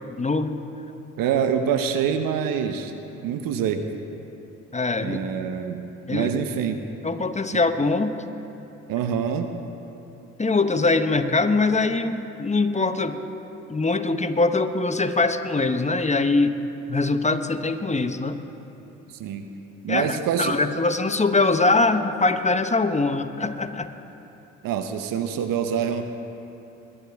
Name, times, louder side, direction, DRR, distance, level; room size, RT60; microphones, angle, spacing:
voice 1, 0.2-0.6 4.7-5.2 6.1-6.3 7.0-8.2 10.4-13.2 13.7-16.6 16.9-18.4 19.9-23.9, left 3 dB, 20° left, 8 dB, 1.0 m, -22 dB
voice 2, 1.2-2.9 3.2-3.8 5.0-5.8 6.1-6.8 7.5-7.6 8.9-9.5 19.2-19.4 19.8-20.6 24.6-26.0, right 8 dB, 70° right, 7 dB, 1.0 m, -25 dB
22.0 x 11.0 x 3.6 m, 2.9 s
hypercardioid pair, 50°, 35 cm